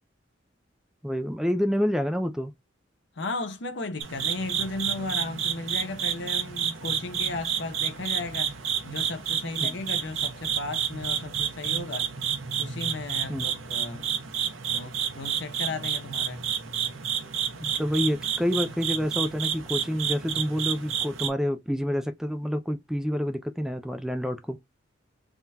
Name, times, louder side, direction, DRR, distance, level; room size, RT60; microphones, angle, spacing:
voice 1, 1.0-2.5 9.6-9.8 13.3-13.5 17.6-24.6, equal, ahead, 0.3 m, -28 dB
voice 2, 3.2-8.5 8.8-12.1 12.6-14.2 14.7-16.4, left 2 dB, 60° left, 0.8 m, -35 dB
sound 1, 4.0-21.3, right 8 dB, 80° right, 1.0 m, -30 dB
3.6 x 3.4 x 2.8 m
head